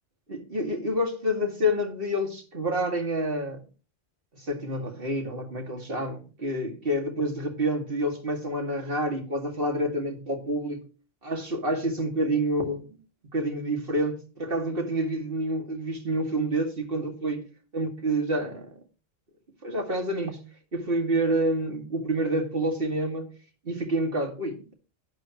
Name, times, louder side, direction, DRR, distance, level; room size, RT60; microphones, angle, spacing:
voice 1, 0.3-3.6 4.4-10.8 11.2-12.8 13.3-17.4 17.7-18.7 19.6-20.4 20.7-23.3 23.6-24.7, right 1 dB, 45° right, 2.4 m, -28 dB
11.5 x 9.7 x 3.0 m
omnidirectional pair, 1.3 m